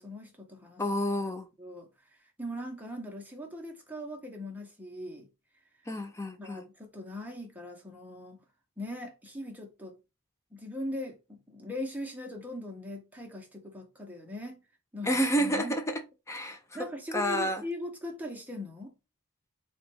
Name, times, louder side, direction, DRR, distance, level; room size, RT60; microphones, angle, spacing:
voice 1, 0.0-0.8 1.6-1.9 2.4-5.3 6.4-8.4 8.8-10.0 10.5-14.6 14.9-15.8 16.7-18.9, left 1 dB, 10° right, 0.8 m, -40 dB
voice 2, 0.8-1.5 5.9-6.7 15.0-16.8 17.1-17.6, equal, 15° left, 0.4 m, -30 dB
4.0 x 2.3 x 4.3 m
head